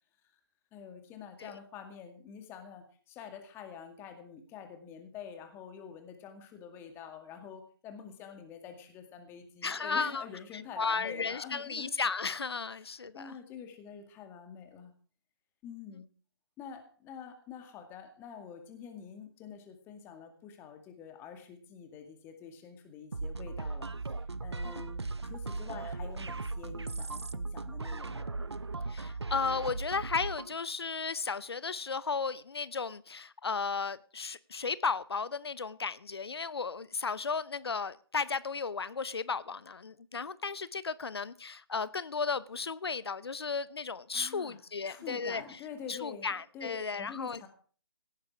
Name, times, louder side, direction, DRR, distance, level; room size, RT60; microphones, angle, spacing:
voice 1, 0.7-11.9 12.8-14.9 15.6-16.1 16.6-23.9 24.4-28.3 44.1-47.5, left 7 dB, 15° left, 2.2 m, -47 dB
voice 2, 9.6-10.2 10.8-13.4 28.9-45.4 45.9-47.4, left 5 dB, 70° left, 0.7 m, -34 dB
sound 1, 23.1-30.5, right 3 dB, 85° right, 0.8 m, -38 dB
17.5 x 9.7 x 4.8 m
figure-of-eight pair, 140°, 13 cm